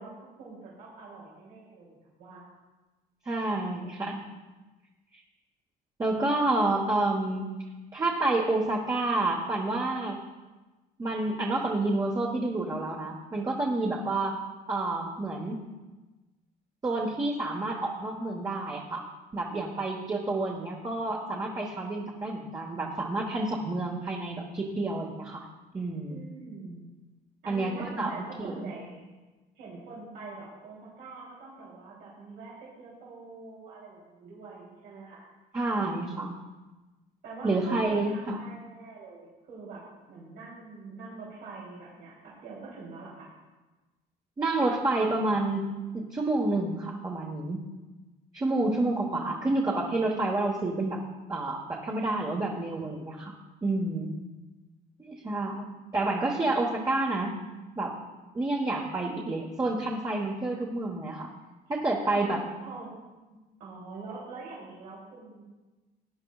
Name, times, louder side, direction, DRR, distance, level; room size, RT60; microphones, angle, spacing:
voice 1, 0.0-2.4 26.1-26.9 27.4-29.0 29.6-35.3 37.2-39.8 40.1-42.1 42.4-43.3 62.0-62.3 62.6-62.9 63.6-65.4, right 3 dB, 85° right, -7 dB, 3.3 m, -44 dB
voice 2, 3.2-4.2 6.0-7.5 7.9-10.2 11.0-14.4 14.7-15.6 16.8-19.0 19.3-25.4 25.7-26.2 27.5-28.7 35.5-36.4 37.4-38.4 44.4-45.6 45.9-47.6 48.3-51.0 51.3-53.3 53.6-54.1 55.0-57.3 57.8-57.9 58.3-61.3 61.7-62.4, right 2 dB, 20° right, -2 dB, 1.3 m, -29 dB
17.0 x 9.5 x 2.4 m, 1.2 s
cardioid pair, 110°, 17 cm